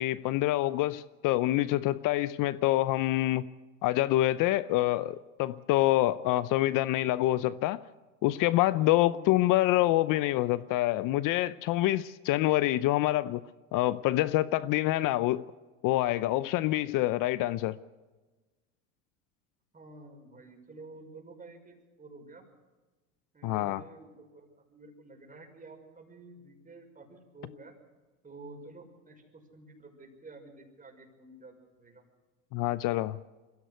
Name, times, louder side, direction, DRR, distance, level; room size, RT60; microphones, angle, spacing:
voice 1, 0.0-3.5 3.8-7.8 8.2-13.4 13.7-15.4 15.8-17.8 23.4-23.8 32.5-33.2, left 16 dB, 55° left, 0.7 m, -26 dB
voice 2, 19.7-22.4 23.3-27.7 28.2-32.0, right 2 dB, 20° right, 5.9 m, -51 dB
23.0 x 16.0 x 8.1 m
supercardioid pair, 95°, 39 cm